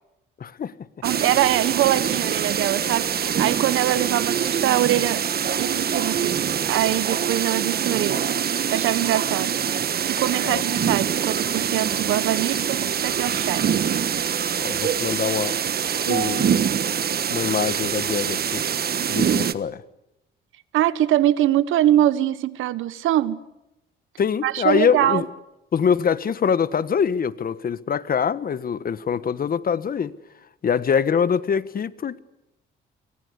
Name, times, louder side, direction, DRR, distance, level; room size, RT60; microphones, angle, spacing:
voice 1, 0.4-0.7 10.5-10.6 14.6-15.6 16.1-16.7 17.3-18.7 19.1-19.8 24.2-25.3 25.7-30.1 30.6-32.2, left 7 dB, 45° left, 1.4 m, -24 dB
sound 1, 1.0-19.5, right 8 dB, 50° right, 1.4 m, -24 dB
voice 2, 1.0-5.2 5.6-8.2 8.7-9.5 10.0-13.7 16.0-16.4 20.7-23.4 24.4-25.2, right 13 dB, 85° right, 1.4 m, -23 dB
29.5 x 24.0 x 8.4 m
cardioid pair, 90°, 20 cm